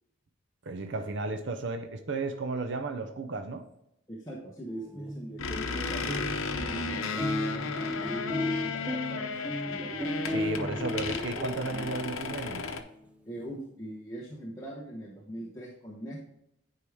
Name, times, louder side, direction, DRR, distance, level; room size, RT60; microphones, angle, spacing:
voice 1, 0.6-3.6 10.3-12.7, right 3 dB, 60° right, 7 dB, 0.6 m, -34 dB
voice 2, 4.1-9.3 9.7-10.8 11.2-11.3 13.2-16.2, right 1 dB, 15° left, -3 dB, 1.0 m, -42 dB
sound 1, 4.8-12.4, left 1 dB, 5° right, 0.5 m, -35 dB
sound 2, 5.4-12.8, left 4 dB, 80° left, 0.8 m, -34 dB
9.9 x 4.7 x 3.5 m, 0.82 s
head